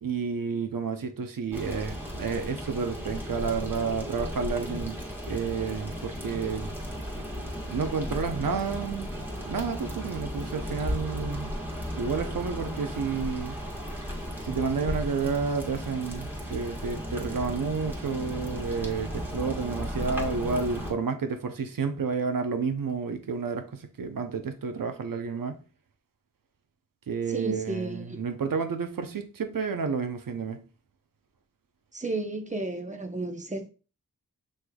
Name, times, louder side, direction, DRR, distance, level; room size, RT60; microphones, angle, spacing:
voice 1, 0.0-4.9 5.3-6.7 7.6-9.1 9.5-11.5 12.0-13.6 14.4-25.6 27.1-30.6, right 5 dB, 75° right, 0.7 m, -30 dB
sound 1, 1.5-20.9, equal, 5° right, 1.4 m, -35 dB
voice 2, 27.3-28.2 31.9-33.7, right 2 dB, 20° right, 0.8 m, -33 dB
6.2 x 3.3 x 2.3 m
cardioid pair, 45°, 34 cm